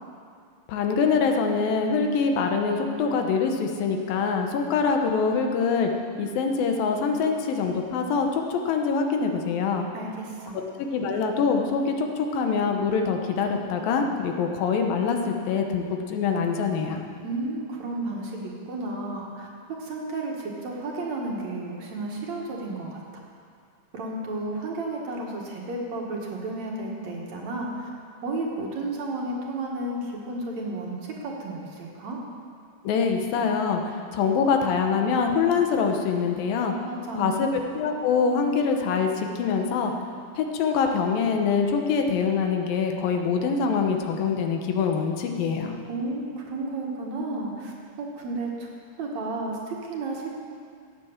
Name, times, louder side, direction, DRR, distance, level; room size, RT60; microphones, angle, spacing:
voice 1, 0.7-5.9 6.2-9.9 10.8-17.0 32.8-36.7 37.2-39.9 40.4-45.8, left 5 dB, 80° left, 3 dB, 2.9 m, -24 dB
voice 2, 9.9-10.6 17.2-19.5 19.8-23.0 23.9-27.9 28.2-32.2 36.8-37.5 45.9-48.7 49.0-50.3, right 2 dB, 55° right, -1 dB, 2.7 m, -32 dB
15.0 x 9.4 x 7.3 m, 2.2 s
omnidirectional pair, 4.0 m